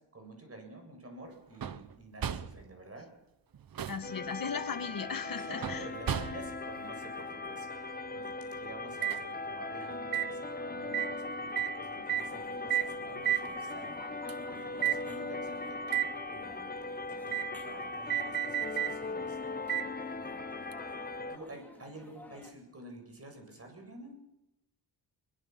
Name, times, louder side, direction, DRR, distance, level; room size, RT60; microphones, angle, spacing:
voice 1, 0.0-3.1 5.5-15.8 16.1-16.7 17.2-19.4 20.2-20.5 21.3-24.2, right 2 dB, 35° right, 4 dB, 7.6 m, -50 dB
sound 1, 1.6-1.9 2.2-2.6 3.5-4.1 5.6-6.6 9.0-9.2 10.1-10.3 10.9-11.1 11.6-11.8 12.1-12.3 12.7-12.9 13.3-13.5 14.3-14.4 14.8-15.0 15.9-16.1 17.3-17.5 18.1-19.0 19.7-19.9 20.7-20.8, right 11 dB, 55° right, 1.1 m, -32 dB
voice 2, 3.9-5.9, left 6 dB, 55° left, 8 dB, 1.9 m, -37 dB
sound 2, 4.0-21.4, left 3 dB, 20° left, 1.2 m, -39 dB
sound 3, 12.1-22.5, left 1 dB, 5° left, 4.2 m, -54 dB
22.5 x 21.0 x 6.1 m, 0.88 s
wide cardioid pair, 110°, 41 cm